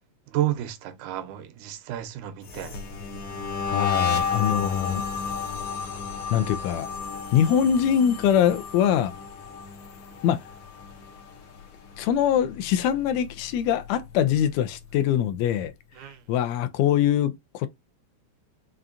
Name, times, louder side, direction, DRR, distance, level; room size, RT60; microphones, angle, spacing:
voice 1, 0.3-2.8 16.0-16.2, right 13 dB, 85° right, 2.1 m, -31 dB
sound 1, 2.4-11.6 11.9-12.3 12.7-14.2, left 5 dB, 65° left, 1.6 m, -32 dB
voice 2, 3.7-5.0 6.3-6.9 7.3-9.1 10.2-10.4 12.0-15.7 16.3-17.7, left 9 dB, 80° left, 1.7 m, -23 dB
5.4 x 2.4 x 2.4 m
omnidirectional pair, 3.3 m